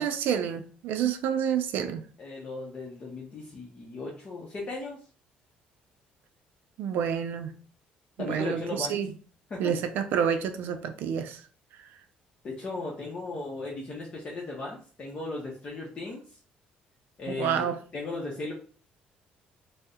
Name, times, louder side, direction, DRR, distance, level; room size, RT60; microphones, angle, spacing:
voice 1, 0.0-2.0 6.8-7.5 8.2-9.1 9.6-11.4 17.3-17.8, right 8 dB, 75° right, 0.4 m, -28 dB
voice 2, 2.2-5.0 8.2-9.0 9.5-9.7 12.4-16.2 17.2-17.7 17.9-18.5, left 3 dB, 40° left, 0.7 m, -36 dB
2.7 x 2.1 x 3.5 m
cardioid pair, 100°, 3 cm